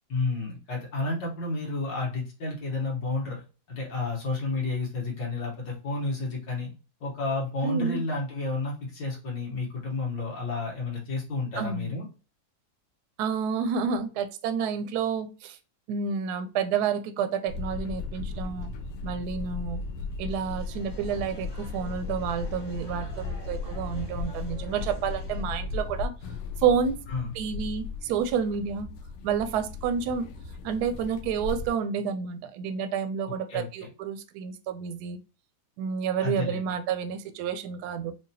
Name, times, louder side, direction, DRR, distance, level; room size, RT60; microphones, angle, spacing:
voice 1, 0.1-3.4 3.7-6.7 7.0-12.0 27.1-27.3 33.5-33.9 36.2-36.7, left 3 dB, 65° left, -2 dB, 1.7 m, -31 dB
voice 2, 7.6-8.0 11.6-11.9 13.2-15.6 15.9-18.7 19.0-19.8 20.2-26.1 26.6-26.9 27.3-28.9 29.2-30.3 30.6-35.2 35.8-38.1, right 7 dB, 75° right, 10 dB, 0.9 m, -29 dB
sound 1, 17.5-31.7, left 4 dB, 85° left, 1.3 m, -36 dB
sound 2, 20.3-25.4, equal, 35° left, 1.6 m, -49 dB
4.7 x 2.3 x 2.7 m, 0.33 s
omnidirectional pair, 2.1 m